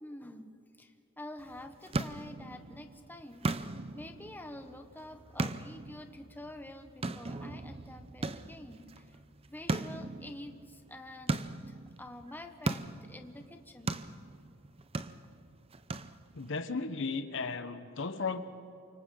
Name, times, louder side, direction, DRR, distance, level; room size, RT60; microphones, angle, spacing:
voice 1, 0.0-3.5 3.9-9.2 9.5-14.0, left 1 dB, 10° left, 6 dB, 1.0 m, -48 dB
sound 1, 1.4-16.6, right 2 dB, 30° right, 0.6 m, -39 dB
voice 2, 16.3-18.4, left 4 dB, 65° left, 10 dB, 1.1 m, -35 dB
28.5 x 25.5 x 3.9 m, 2.7 s
head